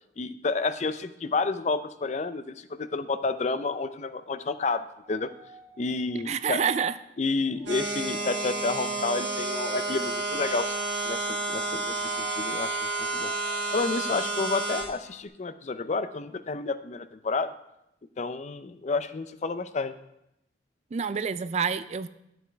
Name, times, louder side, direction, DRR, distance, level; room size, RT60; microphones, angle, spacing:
voice 1, 0.2-5.3 5.8-6.6 7.2-10.8 11.0-13.3 13.7-17.5 18.2-19.9, left 3 dB, 40° left, 12 dB, 0.4 m, -30 dB
sound 1, 5.0-13.8, right 2 dB, 15° right, 1.2 m, -49 dB
voice 2, 6.3-6.9 20.9-22.1, right 6 dB, 40° right, 14 dB, 0.3 m, -27 dB
sound 2, 7.7-14.8, right 2 dB, 75° right, 2.5 m, -30 dB
11.5 x 7.8 x 3.4 m, 0.84 s
head